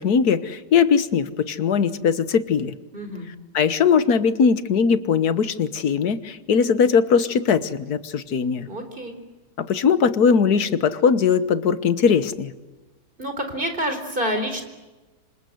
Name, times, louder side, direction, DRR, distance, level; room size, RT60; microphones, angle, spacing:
voice 1, 0.0-2.7 3.5-8.7 9.6-12.5, left 6 dB, 60° left, 13 dB, 1.7 m, -20 dB
voice 2, 2.9-3.3 8.7-9.1 13.2-14.6, equal, 30° right, 7 dB, 4.3 m, -27 dB
27.0 x 26.0 x 7.9 m, 1.2 s
omnidirectional pair, 1.9 m